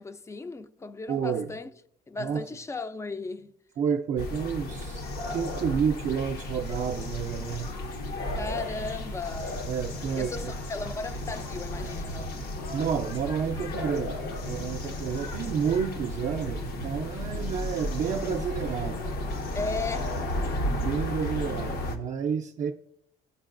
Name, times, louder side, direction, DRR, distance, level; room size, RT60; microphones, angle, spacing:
voice 1, 0.0-1.7 2.1-3.6 8.3-9.6 10.2-12.4 19.5-20.3, left 3 dB, 15° left, 0.4 m, -36 dB
voice 2, 1.1-1.5 2.2-2.4 3.8-7.8 9.7-10.5 12.7-19.0 20.7-22.7, right 7 dB, 45° right, 0.4 m, -30 dB
sound 1, 4.2-22.0, left 1 dB, 70° left, 0.9 m, -33 dB
13.5 x 4.5 x 2.5 m
cardioid pair, 110°, 17 cm